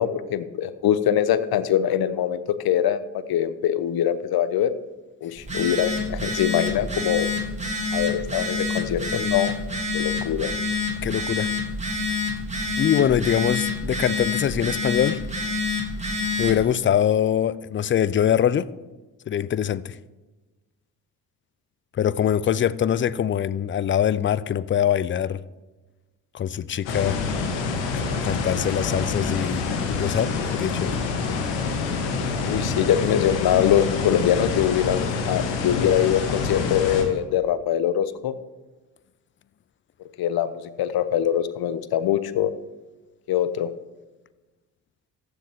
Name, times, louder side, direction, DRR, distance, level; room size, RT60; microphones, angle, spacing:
voice 1, 0.0-4.7 5.2-7.3 7.9-9.5 9.9-10.5 32.4-38.3 40.2-42.5 43.3-43.7, left 10 dB, 50° left, 0.9 m, -23 dB
Telephone, 5.4-16.6, left 3 dB, 15° right, 3.0 m, -27 dB
voice 2, 11.0-11.5 12.8-15.2 16.4-18.7 19.3-20.0 22.0-25.4 26.3-27.2 27.9-31.0, left 9 dB, 25° left, 0.5 m, -23 dB
sound 1, 26.8-37.0, left 4 dB, 65° left, 1.9 m, -27 dB
14.5 x 9.8 x 3.6 m
hypercardioid pair, 50°, 47 cm